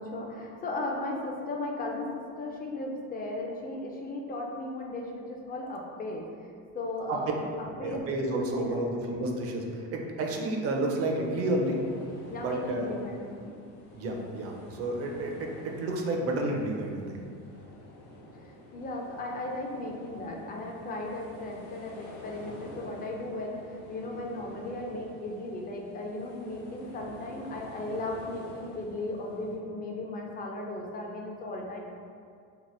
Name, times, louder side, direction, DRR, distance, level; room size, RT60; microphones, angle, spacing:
voice 1, 0.0-7.5 7.8-8.1 8.5-8.8 12.3-13.5 18.4-31.8, left 2 dB, 25° left, 0 dB, 0.3 m, -36 dB
voice 2, 7.8-11.8 12.3-12.9 13.9-17.2, right 1 dB, 40° right, 1 dB, 0.4 m, -31 dB
sound 1, 11.1-29.6, left 1 dB, 75° left, 0.7 m, -48 dB
2.9 x 2.1 x 3.1 m, 2.3 s
supercardioid pair, 100°, 38 cm